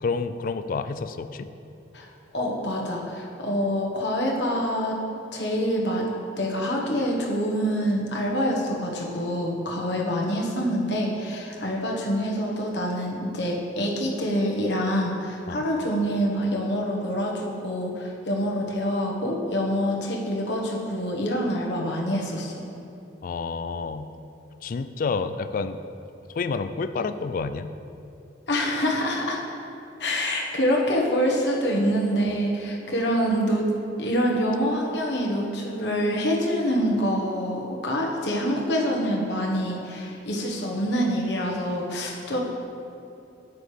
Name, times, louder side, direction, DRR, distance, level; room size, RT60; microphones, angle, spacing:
voice 1, 0.0-1.5 15.5-15.6 23.2-24.1 24.6-25.8 26.3-27.7, left 4 dB, 50° left, 11 dB, 0.3 m, -29 dB
voice 2, 2.3-5.0 5.3-6.1 6.4-22.5 28.5-29.4 30.0-33.6 34.0-42.4, equal, 65° left, -1 dB, 1.2 m, -26 dB
9.1 x 8.5 x 3.3 m, 2.7 s
head